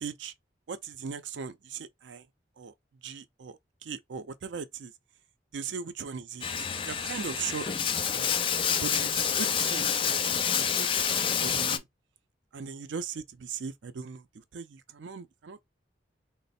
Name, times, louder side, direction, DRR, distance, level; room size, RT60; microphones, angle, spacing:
voice 1, 0.0-0.3 0.7-2.2 2.6-2.7 3.0-4.9 5.5-6.5 6.8-8.3 8.8-11.8 12.5-14.2 14.5-15.6, right 6 dB, 85° right, 0.5 m, -39 dB
Bathtub (filling or washing), 6.4-11.8, left 7 dB, 30° left, 0.3 m, -28 dB
3.1 x 2.0 x 4.1 m
head